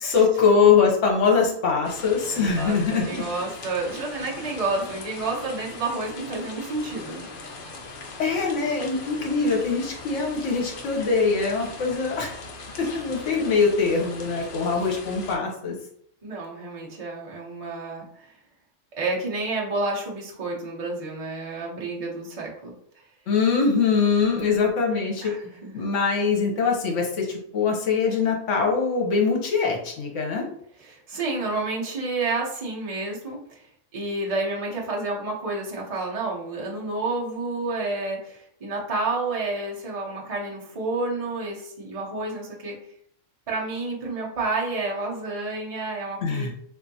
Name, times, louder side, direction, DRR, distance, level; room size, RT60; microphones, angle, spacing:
voice 1, 0.0-3.2 8.2-12.3 12.8-15.7 23.3-25.3 25.7-30.4 46.2-46.5, left 5 dB, 75° left, 1 dB, 1.1 m, -22 dB
sound 1, 1.8-15.4, left 3 dB, 55° left, 0.6 m, -40 dB
voice 2, 2.3-7.3 12.7-12.9 13.2-13.3 16.2-18.3 19.0-22.7 25.2-25.7 30.8-33.7 33.9-42.8 43.5-46.5, right 3 dB, 35° right, -2 dB, 0.7 m, -30 dB
3.5 x 2.6 x 2.7 m, 0.67 s
omnidirectional pair, 1.3 m